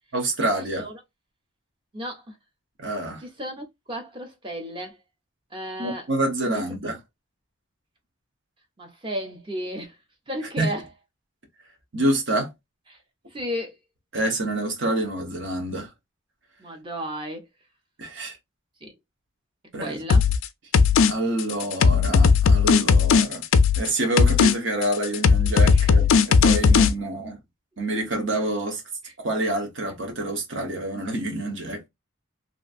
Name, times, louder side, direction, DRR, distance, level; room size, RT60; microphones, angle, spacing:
voice 1, 0.1-0.9 2.8-3.2 5.8-7.0 10.6-10.7 11.9-12.5 14.1-15.9 18.0-18.4 19.7-20.0 21.1-23.4 23.8-27.4 27.8-28.8 29.2-31.9, right 1 dB, 55° right, 1.0 m, -27 dB
voice 2, 1.9-2.4 3.2-5.0 5.5-6.1 6.5-6.9 8.8-10.0 10.3-10.8 12.9-13.0 13.3-13.8 16.6-17.5 18.8-18.9 19.8-20.3 25.7-25.9 29.0-29.1, equal, 25° right, 0.7 m, -34 dB
sound 1, 20.1-20.4 20.7-21.1 21.4-23.9 24.2-24.5 24.8-26.9, left 5 dB, 65° left, 0.4 m, -17 dB
2.9 x 2.5 x 2.4 m
head